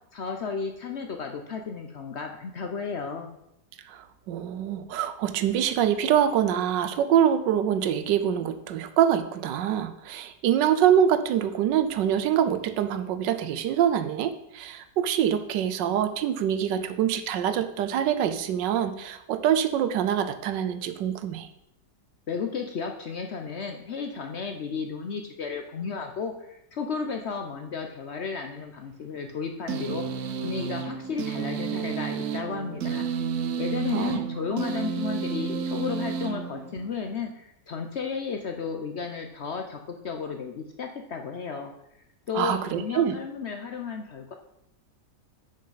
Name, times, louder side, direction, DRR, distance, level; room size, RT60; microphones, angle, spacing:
voice 1, 0.1-3.3 22.3-30.1 30.4-33.1 33.6-41.7 42.3-44.3, left 5 dB, 65° left, 4 dB, 0.6 m, -33 dB
voice 2, 3.9-21.5 33.9-34.2 42.3-43.2, right 9 dB, 80° right, 10 dB, 1.3 m, -25 dB
sound 1, 29.7-37.1, right 6 dB, 60° right, 0.9 m, -31 dB
6.4 x 5.8 x 5.6 m, 0.81 s
omnidirectional pair, 1.9 m